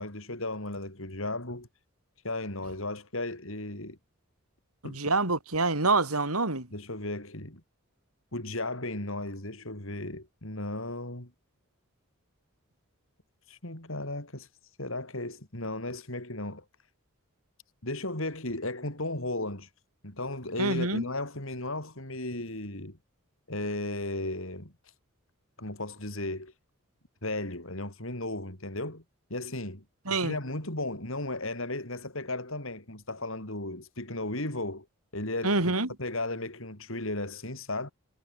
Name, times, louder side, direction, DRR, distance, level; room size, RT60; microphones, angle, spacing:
voice 1, 0.0-1.7 2.2-4.0 4.8-5.0 6.7-7.6 8.3-11.3 13.5-14.5 14.8-16.6 17.8-19.7 20.0-23.0 23.5-24.9 25.6-26.5 27.2-29.0 29.3-29.8 30.1-34.9 35.1-37.9, left 2 dB, 65° left, 5.5 m, -35 dB
voice 2, 4.8-6.7 20.6-21.0 30.1-30.3 35.4-35.9, right 3 dB, 90° right, 5.1 m, -26 dB
head